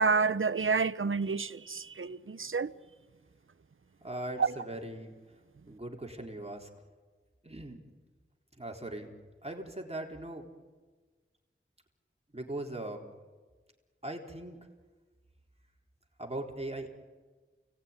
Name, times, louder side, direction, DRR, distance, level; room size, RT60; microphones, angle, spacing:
voice 1, 0.0-2.7 4.4-4.5, right 4 dB, 75° right, 0.8 m, -29 dB
voice 2, 4.0-5.1 5.7-6.7 7.4-7.8 8.6-9.1 9.4-10.5 12.3-13.1 14.0-14.6 16.2-16.9, right 1 dB, 30° right, 3.9 m, -39 dB
29.5 x 18.5 x 9.8 m
wide cardioid pair, 60°, 21 cm